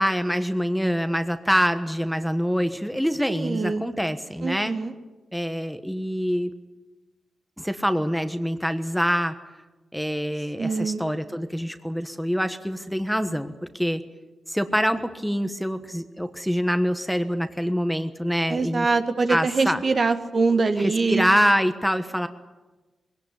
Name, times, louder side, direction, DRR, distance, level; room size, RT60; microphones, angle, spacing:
voice 1, 0.0-4.8 5.3-6.5 7.6-9.3 9.9-14.0 14.5-18.9 19.3-19.8 20.8-22.3, equal, ahead, 9 dB, 1.3 m, -25 dB
voice 2, 3.3-3.9 4.4-4.9 10.6-11.0 18.5-21.3, right 4 dB, 50° right, 7 dB, 1.8 m, -23 dB
21.0 x 17.5 x 9.8 m, 1.2 s
cardioid pair, 75°, 0 cm